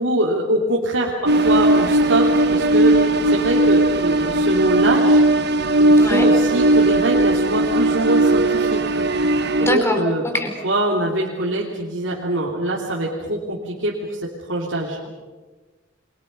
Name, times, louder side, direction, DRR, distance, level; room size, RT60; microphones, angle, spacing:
voice 1, 0.0-5.2 5.8-8.8 9.6-10.2 10.6-15.0, right 1 dB, 85° right, -3 dB, 3.4 m, -23 dB
sound 1, 1.3-9.7, right 2 dB, 60° right, 1.4 m, -17 dB
voice 2, 9.6-10.0 10.2-10.5, left 1 dB, 15° left, 4 dB, 4.3 m, -22 dB
29.5 x 24.5 x 5.6 m, 1.3 s
head